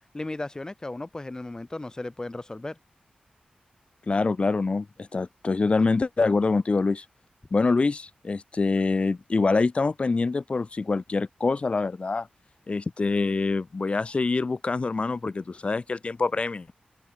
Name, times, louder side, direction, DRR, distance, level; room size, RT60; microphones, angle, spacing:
voice 1, 0.1-2.8, left 2 dB, 25° left, 3.2 m, -35 dB
voice 2, 4.1-7.0 7.5-12.3 12.7-16.7, left 3 dB, 40° left, 1.2 m, -25 dB
open air
wide cardioid pair, 90°, 3 cm